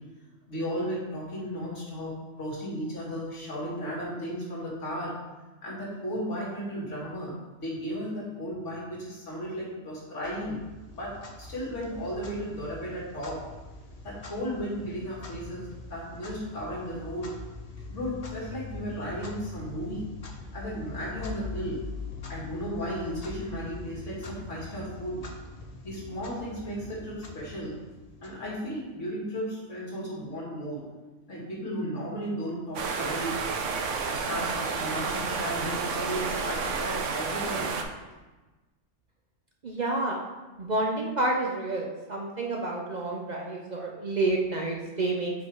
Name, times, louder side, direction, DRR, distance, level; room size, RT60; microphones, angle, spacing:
voice 1, 0.5-5.1 5.6-10.6 10.9-11.1 11.4-13.4 14.0-17.3 17.9-20.0 20.5-21.8 22.3-25.3 25.8-27.8 28.2-30.8 31.3-33.4 34.0-37.7, equal, 75° left, -5 dB, 2.2 m, -35 dB
Clock, 10.2-28.9, left 3 dB, 40° left, 0.7 m, -43 dB
sound 1, 32.8-37.8, right 5 dB, 80° right, 1.0 m, -30 dB
voice 2, 39.6-40.2 40.6-45.3, right 2 dB, 45° right, -1 dB, 0.7 m, -29 dB
5.2 x 4.6 x 4.8 m, 1.2 s
omnidirectional pair, 1.3 m